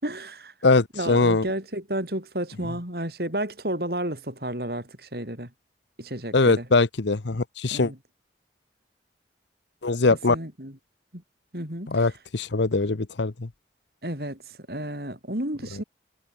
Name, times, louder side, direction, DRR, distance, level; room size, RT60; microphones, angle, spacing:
voice 1, 0.0-0.5 1.0-5.5 6.0-6.7 7.7-8.0 10.3-10.7 11.1-11.2 11.5-12.1 14.0-14.4 14.7-15.8, right 1 dB, 55° right, 6.9 m, -32 dB
voice 2, 0.6-1.5 6.3-7.9 9.8-10.4 11.9-13.5, left 3 dB, 80° left, 0.9 m, -22 dB
head